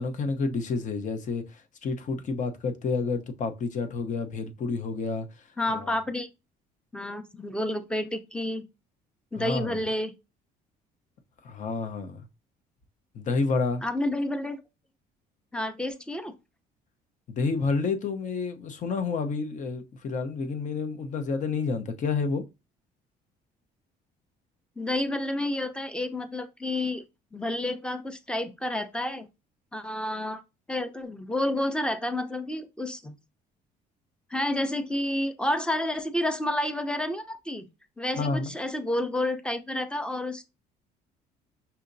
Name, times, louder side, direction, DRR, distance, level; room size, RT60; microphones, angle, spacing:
voice 1, 0.0-5.3 5.7-6.0 9.3-9.8 11.4-12.3 13.1-13.8 17.3-22.4 38.2-38.6, left 4 dB, 50° left, 0.8 m, -29 dB
voice 2, 5.6-6.3 6.9-8.6 9.3-10.1 13.8-14.6 15.5-16.3 24.8-27.0 27.3-29.3 29.7-30.4 30.7-33.2 34.3-37.7 38.0-40.4, left 1 dB, 5° left, 0.6 m, -30 dB
5.6 x 2.8 x 2.6 m
cardioid pair, 110°, 17 cm